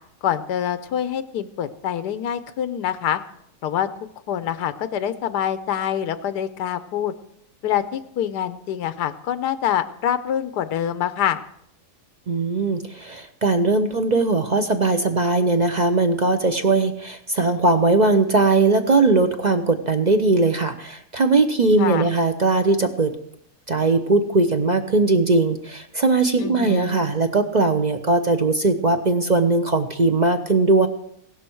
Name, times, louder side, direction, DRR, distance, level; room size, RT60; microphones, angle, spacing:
voice 1, 0.2-3.2 3.6-3.9 4.3-7.1 7.6-11.4 21.8-22.1 26.4-27.0, left 10 dB, 90° left, 12 dB, 1.3 m, -25 dB
voice 2, 12.3-23.1 23.7-30.9, right 3 dB, 40° right, 7 dB, 0.6 m, -19 dB
17.0 x 11.5 x 4.5 m, 0.73 s
omnidirectional pair, 1.7 m